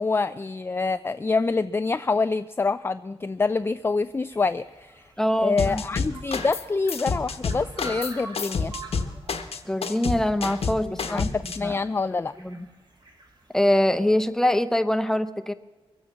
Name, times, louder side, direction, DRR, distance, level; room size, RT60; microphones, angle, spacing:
voice 1, 0.0-5.0 5.4-8.7 10.8-12.3, left 4 dB, 20° left, 12 dB, 0.3 m, -26 dB
sound 1, 3.6-14.2, right 2 dB, 45° right, 2.7 m, -46 dB
voice 2, 5.2-5.8 9.7-11.3 11.6-11.8 12.4-12.7 13.5-15.5, left 1 dB, 5° left, 10 dB, 0.7 m, -23 dB
sound 2, 5.6-6.6 6.9-11.6, left 5 dB, 75° left, 1.1 m, -28 dB
23.0 x 8.7 x 5.7 m, 1.3 s
cardioid pair, 75°, 10 cm